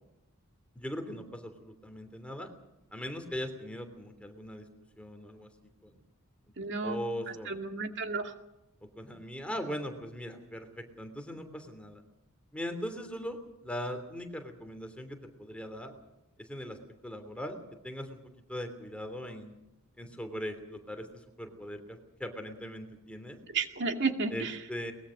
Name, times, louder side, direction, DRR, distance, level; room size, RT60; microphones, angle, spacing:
voice 1, 0.7-2.5 2.9-4.7 5.0-5.5 5.8-6.0 6.8-7.6 8.8-12.0 12.5-15.9 16.4-18.2 18.5-19.5 20.0-23.4 24.3-24.9, equal, 5° left, 5 dB, 3.1 m, -40 dB
voice 2, 6.6-7.0 7.5-8.3 23.5-24.6, right 4 dB, 55° right, 5 dB, 2.2 m, -32 dB
23.0 x 21.0 x 6.4 m, 0.91 s
head